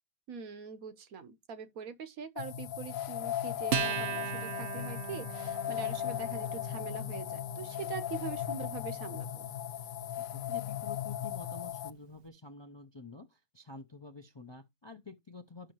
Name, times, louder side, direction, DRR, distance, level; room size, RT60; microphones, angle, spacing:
voice 1, 0.3-9.5, right 6 dB, 80° right, 1.4 m, -43 dB
sound 1, 2.4-11.9, left 11 dB, 75° left, 1.1 m, -37 dB
Acoustic guitar, 3.7-10.5, right 8 dB, 55° right, 0.8 m, -40 dB
voice 2, 10.2-15.7, left 4 dB, 30° left, 0.5 m, -49 dB
11.5 x 6.4 x 3.0 m
omnidirectional pair, 1.5 m